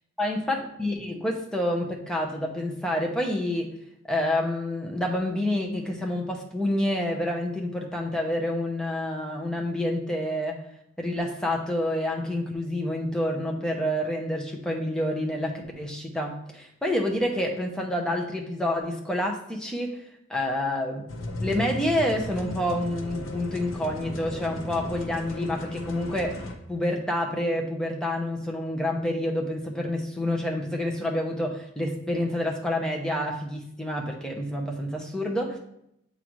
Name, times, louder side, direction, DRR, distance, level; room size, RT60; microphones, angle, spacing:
voice 1, 0.2-3.7 4.1-10.6 11.0-20.0 20.3-21.1 21.4-26.4 26.7-35.6, left 1 dB, 5° left, 0 dB, 0.7 m, -28 dB
sound 1, 21.1-26.6, left 1 dB, 80° left, 0.8 m, -35 dB
8.3 x 3.8 x 3.1 m, 0.77 s
head